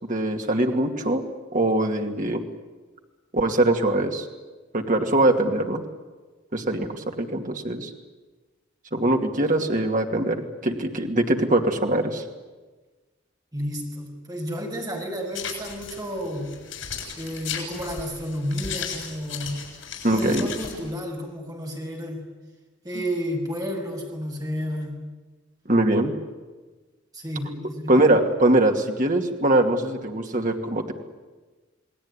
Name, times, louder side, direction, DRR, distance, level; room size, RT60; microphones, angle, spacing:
voice 1, 0.0-1.2 1.5-2.4 3.3-4.3 4.7-5.8 6.5-7.9 8.9-12.2 20.0-20.5 25.7-26.1 27.9-30.9, right 1 dB, 45° right, 3 dB, 2.5 m, -22 dB
voice 2, 13.5-16.5 17.2-19.6 20.1-22.2 22.8-25.0 27.1-28.1, equal, 20° right, 1 dB, 6.4 m, -31 dB
sound 1, 15.3-20.9, left 7 dB, 80° left, 7.3 m, -36 dB
30.0 x 19.5 x 9.9 m, 1.3 s
head